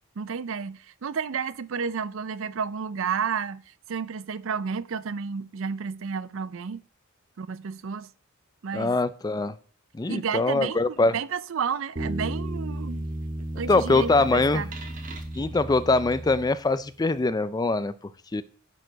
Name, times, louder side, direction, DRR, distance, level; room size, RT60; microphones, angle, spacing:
voice 1, 0.2-3.6 3.9-6.8 7.4-8.1 8.6-9.0 10.1-10.8 11.1-13.0 13.6-14.7, right 6 dB, 65° right, 0.4 m, -31 dB
voice 2, 8.7-9.5 9.9-11.1 13.7-14.6 15.4-17.9 18.3-18.4, left 3 dB, 20° left, 0.4 m, -23 dB
sound 1, 12.0-16.9, right 1 dB, 40° right, 1.4 m, -34 dB
10.5 x 4.7 x 5.1 m
head